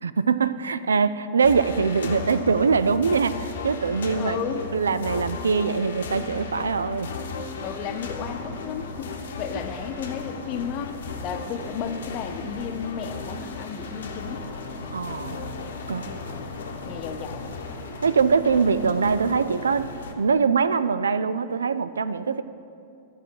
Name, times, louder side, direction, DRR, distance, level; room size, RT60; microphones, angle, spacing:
voice 1, 0.0-4.4 4.7-7.1 14.9-15.4 15.9-16.1 18.0-19.9 20.2-22.4, right 5 dB, 85° right, 14 dB, 0.3 m, -23 dB
sound 1, 1.4-20.1, left 4 dB, 75° left, 0.9 m, -35 dB
voice 2, 4.2-4.6 7.6-11.0 11.2-14.5 16.0-16.5 16.7-17.6, left 7 dB, 45° left, 8 dB, 0.7 m, -33 dB
11.0 x 7.1 x 4.6 m, 2.5 s
hypercardioid pair, 105°, 0 cm